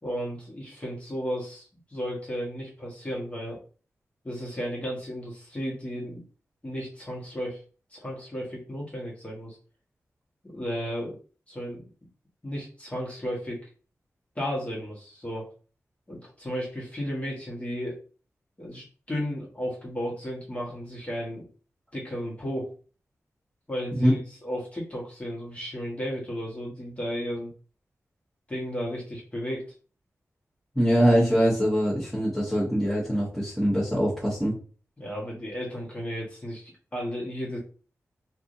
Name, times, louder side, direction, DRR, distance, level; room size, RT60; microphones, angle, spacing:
voice 1, 0.0-3.6 4.2-6.2 6.6-7.6 7.9-9.6 10.4-11.2 11.5-11.8 12.4-13.7 14.3-15.5 16.1-18.0 18.6-21.5 21.9-22.7 23.7-24.2 24.4-27.5 28.5-29.7 35.0-37.6, equal, 25° left, -4 dB, 1.4 m, -34 dB
voice 2, 30.7-34.5, equal, ahead, -11 dB, 1.5 m, -23 dB
3.3 x 2.6 x 2.7 m, 0.38 s
cardioid pair, 70°, 6 cm